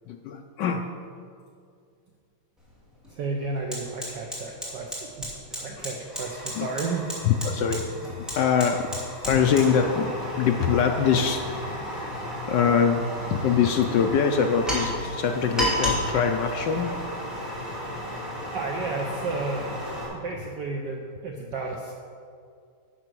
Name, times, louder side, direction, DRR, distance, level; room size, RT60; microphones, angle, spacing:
voice 1, 0.1-0.9 5.8-5.9 6.6-6.7 7.2-11.6 12.4-13.1 13.3-16.9, left 7 dB, 75° left, 5 dB, 1.1 m, -24 dB
Fire, 2.6-2.7 3.0-20.1, equal, ahead, 2.6 m, -33 dB
voice 2, 3.1-7.1 18.5-19.7 20.1-21.9, right 3 dB, 65° right, 2 dB, 1.3 m, -32 dB
11.0 x 6.6 x 6.1 m, 2.3 s
omnidirectional pair, 2.4 m